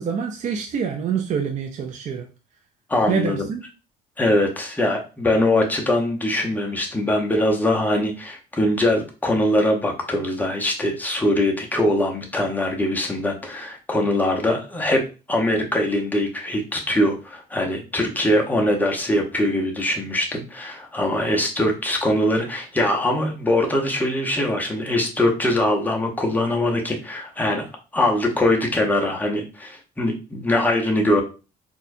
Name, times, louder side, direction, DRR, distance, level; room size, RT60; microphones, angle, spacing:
voice 1, 0.0-2.2 3.1-3.6, right 7 dB, 45° right, 3 dB, 0.5 m, -26 dB
voice 2, 2.9-3.5 4.2-15.0 15.3-27.6 27.9-31.2, left 1 dB, 10° left, 1 dB, 0.9 m, -22 dB
4.2 x 2.3 x 2.6 m, 0.32 s
cardioid pair, 110°, 17 cm